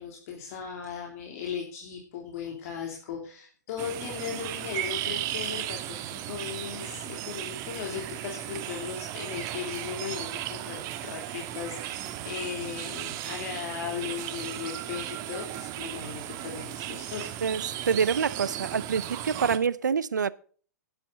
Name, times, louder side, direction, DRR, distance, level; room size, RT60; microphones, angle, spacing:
voice 1, 0.0-17.3, left 7 dB, 55° left, 2.9 m, -37 dB
sound 1, 3.8-19.6, right 13 dB, 35° right, 1.3 m, -36 dB
voice 2, 17.4-20.3, right 6 dB, 80° right, 0.6 m, -26 dB
12.5 x 10.5 x 3.9 m
hypercardioid pair, 115°, 10 cm